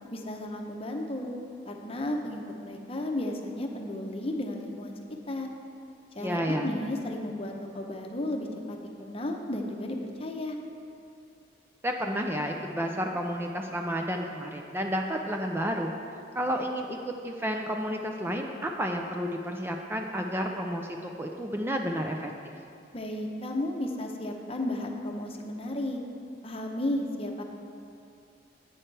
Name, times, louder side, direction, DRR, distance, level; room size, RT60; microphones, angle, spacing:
voice 1, 0.1-1.3 1.7-5.0 5.3-5.5 6.2-10.6 22.9-26.0 26.4-27.4, left 1 dB, 35° left, 2 dB, 0.8 m, -33 dB
voice 2, 6.2-6.7 11.8-15.9 16.3-22.5, equal, 15° right, 2 dB, 0.4 m, -31 dB
11.0 x 8.8 x 3.3 m, 2.5 s
head